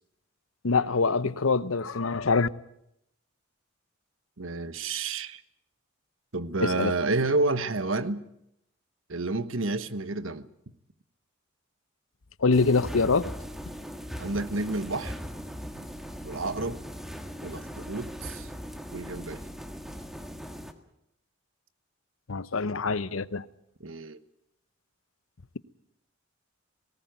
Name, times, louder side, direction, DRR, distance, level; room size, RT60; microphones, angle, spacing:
voice 1, 0.6-2.5 6.6-6.9 12.4-13.3 22.3-23.4, left 4 dB, 80° left, 0.8 m, -24 dB
voice 2, 4.4-5.4 6.3-8.2 9.1-10.5 14.2-15.2 15.8-15.9 16.2-16.8 17.4-18.5 18.9-19.4 23.8-24.2, right 3 dB, 70° right, 1.2 m, -30 dB
sound 1, 12.5-20.7, equal, ahead, 1.7 m, -39 dB
19.0 x 18.5 x 9.3 m
head